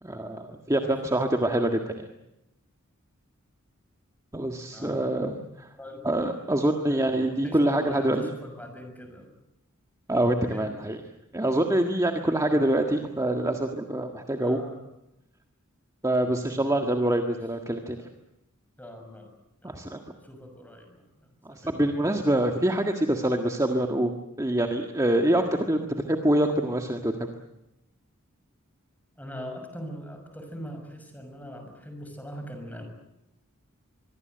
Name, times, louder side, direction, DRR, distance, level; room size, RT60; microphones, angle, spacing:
voice 1, 0.0-2.1 4.3-5.7 6.0-8.3 10.1-11.0 11.3-14.6 16.0-18.0 19.6-20.0 21.4-24.1 24.4-27.3, right 1 dB, 15° right, 4 dB, 1.7 m, -25 dB
voice 2, 4.7-5.0 5.8-6.1 6.9-9.3 10.4-10.7 12.5-12.7 14.4-14.8 16.4-16.6 17.3-17.4 18.0-18.1 18.8-19.3 19.6-19.8 20.2-21.7 29.2-32.9, equal, 10° left, 5 dB, 6.3 m, -42 dB
25.0 x 22.5 x 7.9 m, 0.87 s
head